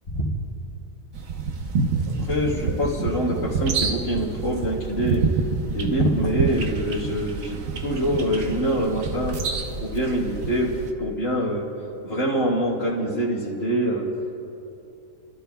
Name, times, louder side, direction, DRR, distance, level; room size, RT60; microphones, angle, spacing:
sound 1, 1.1-10.9, right 4 dB, 70° right, 1.2 m, -28 dB
voice 1, 2.1-5.2 5.7-9.5 9.8-11.7 12.0-14.1, equal, 65° left, -8 dB, 2.4 m, -25 dB
29.0 x 13.0 x 2.3 m, 2.8 s
omnidirectional pair, 1.5 m